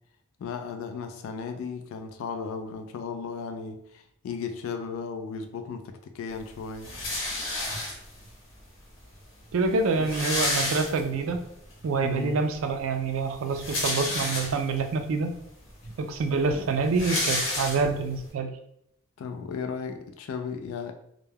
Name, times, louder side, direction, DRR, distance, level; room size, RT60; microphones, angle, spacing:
voice 1, 0.4-6.9 10.0-10.1 12.0-12.4 16.5-16.7 19.2-20.9, left 5 dB, 80° left, 0.3 m, -35 dB
sound 1, 6.8-8.3 9.1-9.2 9.4-9.5 9.8-11.4 11.8-11.9 13.3-14.8 15.5-15.6 15.8-18.2, left 2 dB, 65° left, 0.8 m, -30 dB
voice 2, 9.5-11.4 11.8-15.3 16.0-18.5, right 4 dB, 75° right, 0.3 m, -26 dB
2.2 x 2.1 x 3.3 m
head